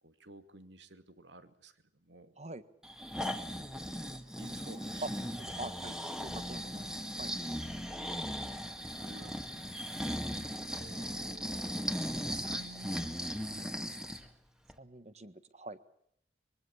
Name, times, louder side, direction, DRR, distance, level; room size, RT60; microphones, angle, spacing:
voice 1, 0.0-2.4 4.4-5.1 6.6-6.7 8.2-8.5 8.9-9.8 10.8-11.7 12.3-14.1, right 2 dB, 80° right, 10 dB, 2.4 m, -53 dB
Breathing, 2.8-14.3 14.7-14.8, equal, 5° right, 2.0 m, -38 dB
voice 2, 5.6-6.9 7.2-7.3 14.8-15.8, right 2 dB, 35° right, 13 dB, 1.5 m, -46 dB
24.5 x 23.0 x 7.2 m, 0.72 s
head